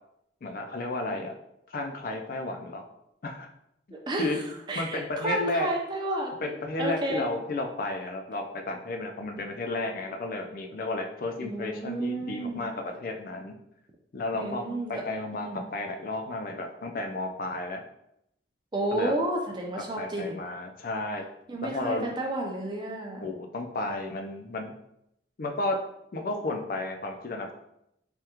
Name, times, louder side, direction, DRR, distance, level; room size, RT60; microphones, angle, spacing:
voice 1, 0.4-1.3 1.7-2.8 3.2-3.5 3.9-4.4 4.8-5.7 6.4-13.5 14.1-14.6 14.9-17.8 18.9-19.1 20.0-21.3 21.6-22.1 23.2-24.7 25.4-25.8 26.1-27.5, left 2 dB, 50° left, 3 dB, 0.4 m, -32 dB
voice 2, 3.9-4.4 4.7-7.3 11.4-12.7 14.3-15.0 15.3-15.7 18.7-20.4 21.5-23.3, right 1 dB, 25° right, 0 dB, 0.5 m, -31 dB
3.4 x 2.3 x 2.9 m, 0.79 s
head